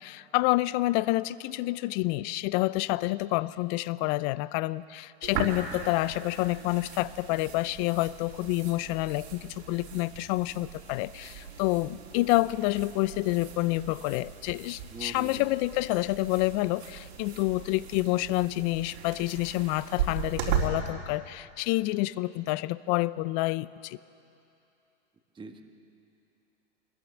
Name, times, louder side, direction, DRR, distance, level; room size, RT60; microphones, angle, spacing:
voice 1, 0.0-24.0, left 19 dB, 40° left, 19 dB, 0.5 m, -28 dB
sound 1, 5.2-20.7, right 7 dB, 65° right, 4.1 m, -38 dB
voice 2, 14.9-15.5 25.4-25.6, right 3 dB, 15° right, 5 dB, 1.6 m, -42 dB
23.5 x 21.5 x 7.2 m, 2.8 s
hypercardioid pair, 115°, 35 cm